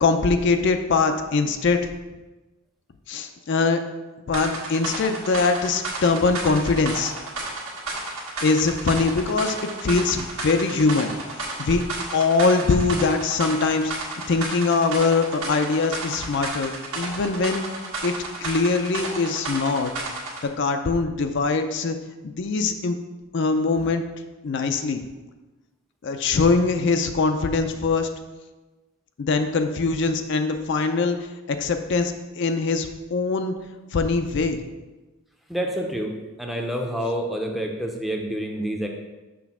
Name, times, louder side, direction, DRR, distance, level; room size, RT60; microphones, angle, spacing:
voice 1, 0.0-1.9 3.1-3.8 4.3-7.1 8.4-9.6 9.8-11.1 11.6-11.8 12.1-13.9 14.3-17.6 18.0-18.1 18.4-19.9 20.6-22.0 22.2-23.0 23.3-24.0 24.4-25.0 26.0-28.1 29.2-31.2 31.5-33.5 33.9-34.6, left 4 dB, 55° left, 7 dB, 0.4 m, -22 dB
sound 1, 4.3-20.5, right 2 dB, 80° right, 1.5 m, -32 dB
voice 2, 35.5-36.1 36.4-38.9, equal, ahead, 1 dB, 0.6 m, -28 dB
6.1 x 3.3 x 5.9 m, 1.1 s
head